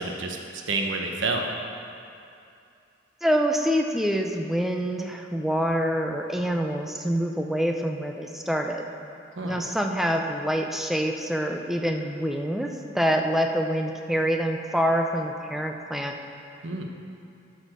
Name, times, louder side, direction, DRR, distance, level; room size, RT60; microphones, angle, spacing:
voice 1, 0.0-1.5 9.3-9.6 16.6-16.8, right 3 dB, 80° right, 2 dB, 1.0 m, -29 dB
voice 2, 3.2-8.8 9.4-16.1, equal, ahead, 3 dB, 0.5 m, -26 dB
12.0 x 4.2 x 6.6 m, 2.6 s
head